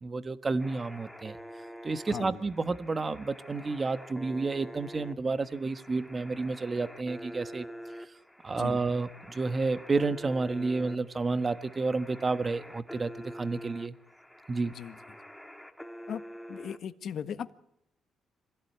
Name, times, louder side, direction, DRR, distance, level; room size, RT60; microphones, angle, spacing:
voice 1, 0.0-1.4 1.8-7.7 8.4-13.9 14.5-14.7, right 3 dB, 30° right, 1.3 m, -30 dB
sound 1, 0.6-16.8, equal, 5° left, 2.2 m, -47 dB
voice 2, 2.1-2.4 8.6-8.8 14.7-15.0 16.1-16.2 16.5-17.5, left 8 dB, 65° left, 1.5 m, -38 dB
26.0 x 17.0 x 9.4 m
cardioid pair, 90°, 0 cm